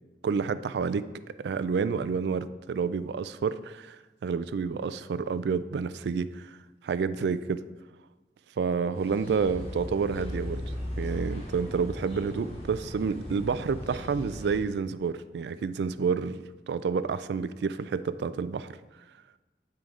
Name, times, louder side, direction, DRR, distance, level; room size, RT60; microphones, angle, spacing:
voice 1, 0.2-1.1 1.4-4.0 4.2-6.6 6.8-7.6 8.6-18.7, right 5 dB, 75° right, 15 dB, 0.3 m, -29 dB
sound 1, 8.9-14.6, equal, 35° left, 1.2 m, -37 dB
9.0 x 3.8 x 4.7 m, 1.2 s
head